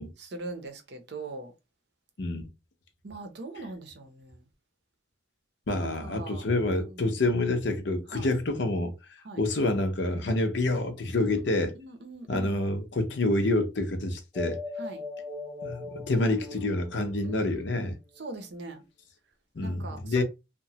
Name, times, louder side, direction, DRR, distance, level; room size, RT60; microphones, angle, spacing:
voice 1, 0.2-1.5 3.0-4.4 6.0-6.5 7.0-7.1 8.1-8.3 9.2-9.4 11.2-12.6 14.8-15.1 17.2-17.8 18.2-18.8 19.6-20.2, right 2 dB, 55° right, 0.6 m, -41 dB
voice 2, 5.7-8.9 9.4-11.7 12.3-14.6 15.6-18.0 19.6-20.2, left 2 dB, 60° left, 0.6 m, -27 dB
sound 1, 14.3-18.2, left 2 dB, 10° right, 0.8 m, -39 dB
2.9 x 2.1 x 2.8 m
head